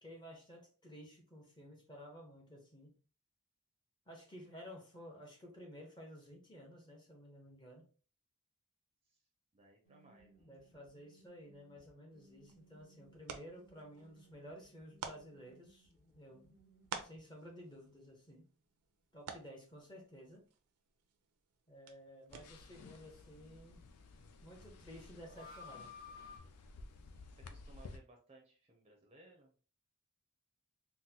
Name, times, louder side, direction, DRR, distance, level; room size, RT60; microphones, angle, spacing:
voice 1, 0.0-3.0 4.1-7.9 10.4-16.6 17.0-18.5 19.1-20.4 21.7-23.8 24.4-26.2, equal, 20° left, 1 dB, 0.8 m, -54 dB
voice 2, 9.5-11.1 27.5-29.5, right 2 dB, 25° right, 2 dB, 0.5 m, -63 dB
sound 1, 9.8-17.7 17.9-18.0 24.8-26.4, left 4 dB, 40° left, 1.1 m, -59 dB
sound 2, 12.1-22.8, right 6 dB, 80° right, 0.5 m, -53 dB
sound 3, 22.3-28.0, left 3 dB, 85° left, 0.5 m, -55 dB
3.9 x 2.1 x 2.7 m, 0.39 s
head